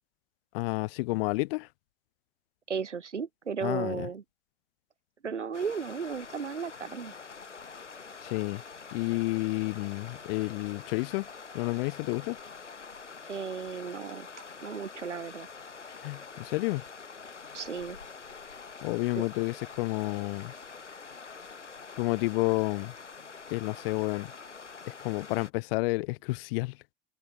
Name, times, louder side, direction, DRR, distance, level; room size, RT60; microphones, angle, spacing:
voice 1, 0.5-1.7 3.6-4.1 8.2-8.6 8.9-11.3 11.5-12.4 16.0-16.8 18.8-20.5 22.0-22.9 23.5-24.3 24.9-26.8, left 24 dB, 55° left, 0.9 m, -30 dB
voice 2, 2.7-4.2 5.2-7.1 13.3-14.3 14.6-15.5 17.5-18.0 19.1-19.2, right 6 dB, 85° right, 1.0 m, -35 dB
sound 1, 5.5-25.5, left 5 dB, 80° left, 6.7 m, -46 dB
figure-of-eight pair, 70°, 35 cm